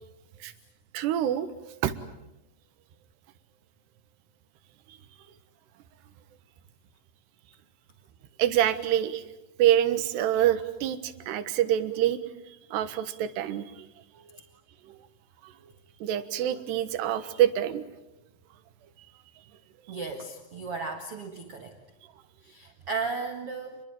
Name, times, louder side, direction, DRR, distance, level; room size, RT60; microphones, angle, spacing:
voice 1, 0.9-1.9 8.4-9.2 9.6-12.2 12.7-13.9 14.2-14.4 14.9-15.0 15.4-15.5 16.0-17.9, right 11 dB, 90° right, 12 dB, 3.5 m, -26 dB
voice 2, 19.9-21.8 22.4-23.8, right 4 dB, 45° right, 4 dB, 2.1 m, -35 dB
28.5 x 22.0 x 9.1 m, 0.94 s
omnidirectional pair, 4.7 m